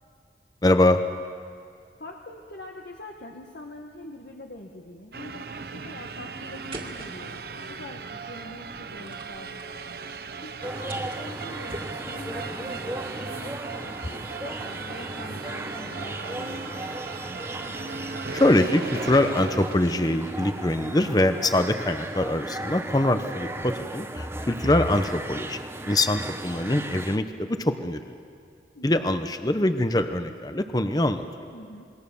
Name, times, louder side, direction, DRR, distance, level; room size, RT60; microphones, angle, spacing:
voice 1, 0.6-1.0 18.3-28.2 28.8-31.2, left 1 dB, 20° left, 9 dB, 0.8 m, -23 dB
voice 2, 2.0-7.4 7.7-9.6 10.4-16.7 28.7-29.0 31.5-31.8, left 1 dB, 70° left, 1 dB, 1.6 m, -44 dB
sound 1, 5.1-19.8, right 4 dB, 60° right, 0.8 m, -37 dB
sound 2, 6.7-12.4, right 1 dB, 30° right, 2.3 m, -46 dB
sound 3, 10.6-27.2, right 1 dB, 15° right, 0.8 m, -36 dB
27.0 x 22.0 x 7.1 m, 2.3 s
head